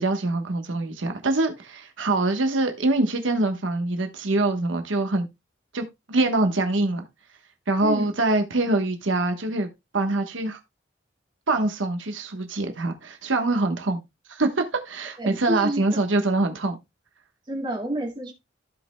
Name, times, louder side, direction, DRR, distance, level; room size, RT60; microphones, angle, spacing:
voice 1, 0.0-5.3 5.7-7.0 7.7-9.7 9.9-10.6 11.5-14.0 14.3-16.8, right 2 dB, 90° right, 1.2 m, -24 dB
voice 2, 7.8-8.1 15.2-16.0 17.5-18.3, right 1 dB, 25° right, 2.1 m, -29 dB
15.0 x 5.3 x 2.2 m
head